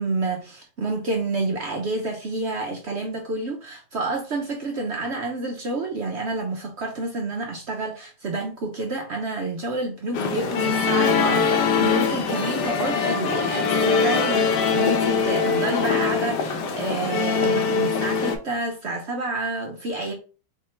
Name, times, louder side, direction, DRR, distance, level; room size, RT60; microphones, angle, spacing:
voice 1, 0.0-20.1, right 2 dB, 65° right, 0.7 m, -29 dB
sound 1, 10.1-18.4, left 5 dB, 75° left, 1.3 m, -22 dB
3.7 x 2.6 x 4.3 m
omnidirectional pair, 1.9 m